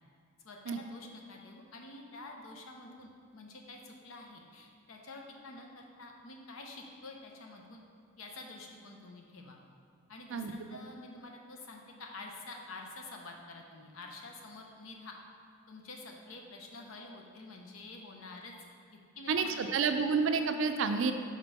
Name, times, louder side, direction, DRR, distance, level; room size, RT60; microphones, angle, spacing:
voice 1, 0.4-7.8 8.2-9.6 10.1-15.2 15.7-18.5 18.9-20.0, left 2 dB, 75° left, 2 dB, 0.8 m, -48 dB
voice 2, 19.3-21.1, right 5 dB, 65° right, 7 dB, 0.4 m, -29 dB
5.2 x 3.7 x 5.5 m, 2.3 s
head